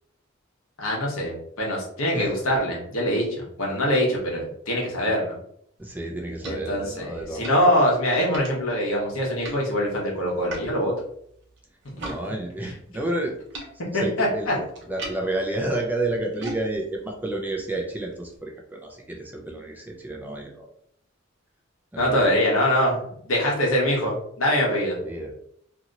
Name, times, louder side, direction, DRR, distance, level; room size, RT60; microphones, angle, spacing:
voice 1, 0.8-3.2 3.6-5.4 6.4-10.9 11.8-11.9 12.6-12.7 13.9-14.5 22.0-25.0, equal, 85° left, -2 dB, 1.1 m, -23 dB
voice 2, 5.8-7.6 12.0-13.3 13.9-20.7 21.9-22.2 25.0-25.3, right 2 dB, 10° right, 0 dB, 0.4 m, -30 dB
sound 1, 5.8-12.2 12.5-18.4, right 2 dB, 60° right, 0.7 m, -43 dB
2.8 x 2.8 x 2.5 m, 0.67 s
head